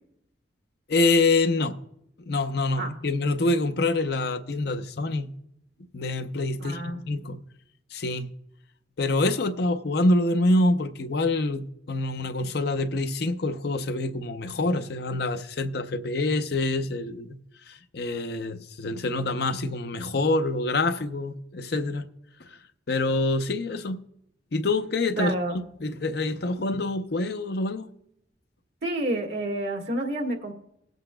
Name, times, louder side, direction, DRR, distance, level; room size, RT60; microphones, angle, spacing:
voice 1, 0.9-1.8 2.3-5.3 5.9-7.4 7.9-8.3 9.0-17.4 17.7-22.1 22.4-22.5 22.9-24.0 24.5-25.3 25.8-27.9, left 2 dB, 60° left, 0.6 m, -26 dB
voice 2, 6.6-7.0 25.2-25.6 28.8-30.5, right 1 dB, 60° right, 1.6 m, -29 dB
20.0 x 8.0 x 2.2 m
head